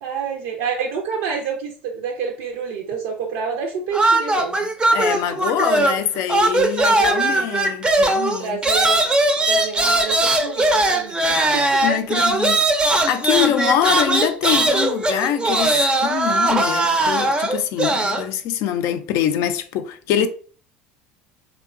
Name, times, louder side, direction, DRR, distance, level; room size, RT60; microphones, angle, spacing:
voice 1, 0.0-4.7 6.0-6.1 6.8-7.5 8.4-9.1 9.5-11.6, right 6 dB, 75° right, 0.4 m, -28 dB
sound 1, 3.9-6.0 6.3-18.3, right 2 dB, 15° right, 0.4 m, -19 dB
voice 2, 4.9-8.6 11.5-12.6 13.1-20.3, left 10 dB, 65° left, 0.3 m, -24 dB
2.7 x 2.2 x 2.4 m
hypercardioid pair, 80°, 5 cm